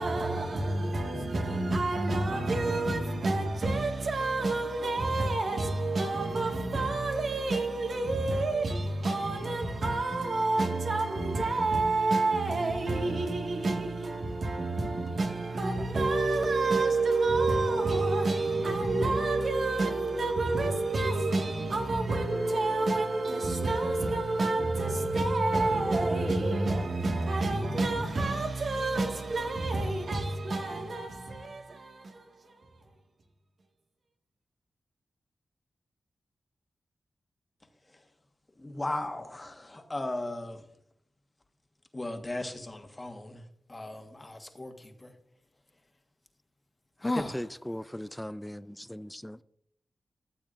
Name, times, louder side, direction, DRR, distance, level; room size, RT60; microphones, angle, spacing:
voice 1, 0.0-32.5, right 2 dB, 70° right, 1.9 m, -28 dB
voice 2, 38.6-40.6 41.9-45.1 47.0-47.6, left 2 dB, 30° left, 1.5 m, -36 dB
voice 3, 47.3-49.1, equal, 5° left, 0.4 m, -38 dB
14.5 x 7.1 x 2.6 m
cardioid pair, 50°, 0 cm